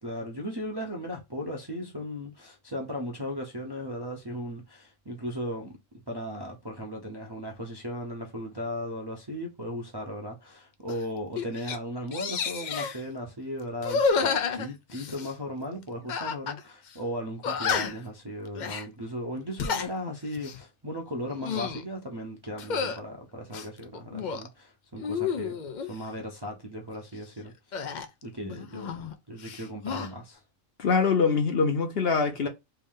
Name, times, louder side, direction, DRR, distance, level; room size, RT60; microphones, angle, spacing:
voice 1, 0.0-5.8 6.1-25.5 25.9-27.5 28.2-30.4, equal, 30° right, 0.5 m, -36 dB
sound 1, 10.9-11.0 11.4-11.8 12.1-13.0 13.8-15.3 16.1-16.6 16.9-17.0 17.4-18.1 18.5-18.8 19.4-19.9 20.3-20.6 21.2-21.8 22.6-23.0 23.5-24.5 25.0-25.9 27.7-29.1 29.4-30.1, left 5 dB, 70° left, 0.4 m, -30 dB
voice 2, 30.8-32.5, left 5 dB, 55° left, 0.9 m, -24 dB
3.4 x 2.6 x 3.5 m
omnidirectional pair, 1.4 m